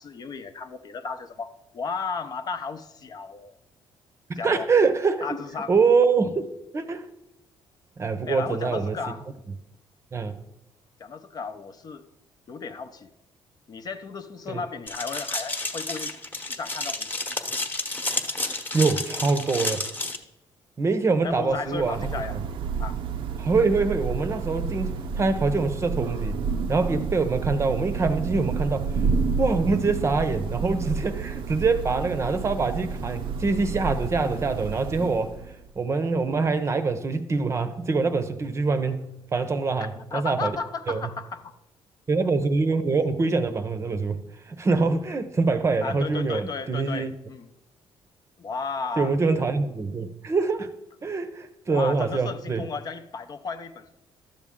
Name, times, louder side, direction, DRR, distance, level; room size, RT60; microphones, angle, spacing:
voice 1, 0.0-3.6 4.4-4.7 5.2-5.7 8.3-9.3 11.0-12.0 12.5-13.1 13.7-16.1 16.5-17.2 21.2-22.4 22.8-23.0 39.8-41.6 45.8-47.5 48.4-49.2 51.7-54.0, left 4 dB, 45° left, 0.7 m, -34 dB
voice 2, 4.3-5.2 5.7-7.0 8.0-9.0 10.1-10.4 14.5-14.6 18.4-19.8 20.8-22.1 23.4-26.4 26.7-28.9 29.4-35.4 35.8-40.6 40.9-41.0 42.1-47.1 49.0-50.7 51.0-52.7, right 4 dB, 30° right, 0.7 m, -24 dB
sound 1, 14.9-20.2, left 2 dB, 20° left, 1.1 m, -30 dB
Thunder / Rain, 21.3-35.7, right 5 dB, 70° right, 0.6 m, -30 dB
11.5 x 7.2 x 3.7 m
cardioid pair, 100°, 9 cm